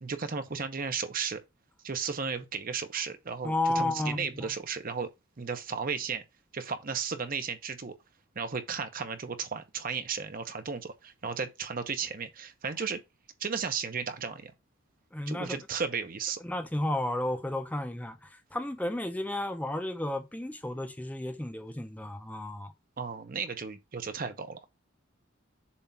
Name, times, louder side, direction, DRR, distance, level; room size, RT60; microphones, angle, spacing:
voice 1, 0.0-1.4 1.8-5.1 5.4-6.2 6.5-7.9 8.4-13.0 13.4-14.5 15.3-16.4 23.0-24.6, right 5 dB, 45° right, 0.7 m, -34 dB
voice 2, 3.4-4.5 15.1-15.6 16.4-22.7, left 1 dB, 10° left, 0.6 m, -32 dB
7.0 x 2.5 x 5.6 m
head